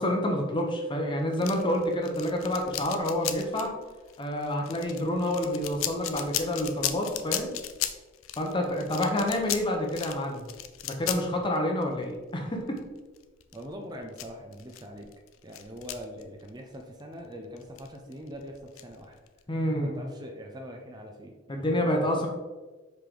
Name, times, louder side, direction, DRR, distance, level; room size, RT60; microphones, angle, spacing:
voice 1, 0.0-3.7 4.2-7.5 8.4-10.4 10.8-12.8 19.5-20.0 21.5-22.3, left 1 dB, 25° left, 2 dB, 0.9 m, -28 dB
sound 1, 1.3-16.7 17.0-17.1 17.6-19.4, left 11 dB, 90° left, 0.5 m, -36 dB
voice 2, 13.5-15.1 15.4-19.2 19.8-22.2, equal, 20° right, 2 dB, 0.6 m, -43 dB
5.1 x 4.9 x 3.8 m, 1.3 s
head